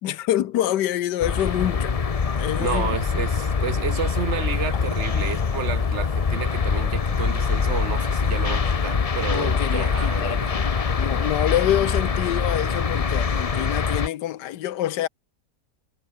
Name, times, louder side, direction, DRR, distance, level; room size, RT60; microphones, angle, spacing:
voice 1, 0.0-1.9 2.4-2.9 9.3-10.7 11.0-15.1, left 12 dB, 80° left, 1.5 m, -26 dB
sound 1, 1.2-14.1, left 5 dB, 45° left, 0.4 m, -24 dB
voice 2, 2.6-10.6, right 7 dB, 45° right, 1.6 m, -31 dB
omnidirectional pair, 1.8 m